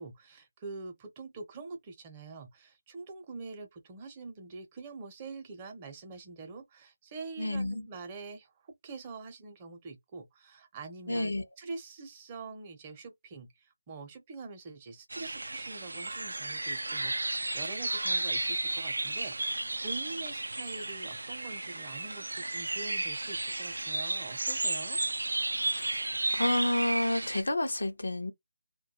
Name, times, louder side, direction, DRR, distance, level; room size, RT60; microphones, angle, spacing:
voice 1, 0.0-25.0, right 4 dB, 25° right, 0.6 m, -45 dB
voice 2, 7.4-7.9 11.1-11.4 25.7-28.3, left 1 dB, 80° left, 0.5 m, -30 dB
sound 1, 15.1-27.4, right 2 dB, 80° right, 0.3 m, -33 dB
2.2 x 2.1 x 2.8 m
figure-of-eight pair, 160°, 0 cm